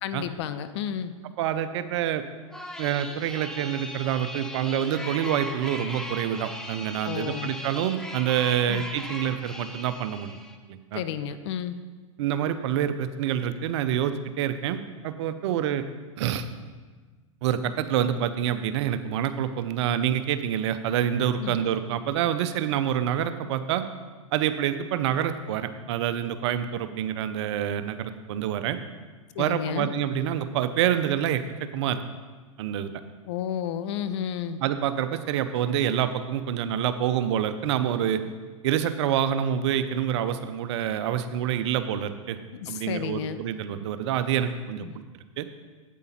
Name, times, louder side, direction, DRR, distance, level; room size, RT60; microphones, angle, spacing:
voice 1, 0.0-1.2 7.0-7.5 8.7-8.8 10.9-11.8 21.4-21.6 29.3-29.9 33.3-34.6 38.2-38.3 42.5-43.4 44.8-45.0, left 9 dB, 55° left, 12 dB, 0.7 m, -32 dB
voice 2, 1.4-2.2 2.8-10.4 10.7-11.0 12.2-15.8 16.2-16.5 17.4-23.8 24.3-28.8 29.4-32.0 32.6-33.0 34.6-38.2 38.6-42.4 42.7-44.8 45.4-45.5, right 10 dB, 55° right, 11 dB, 0.7 m, -27 dB
sound 1, 2.5-10.6, left 1 dB, 5° left, 0.8 m, -38 dB
8.4 x 8.2 x 4.3 m, 1.4 s
hypercardioid pair, 105°, 17 cm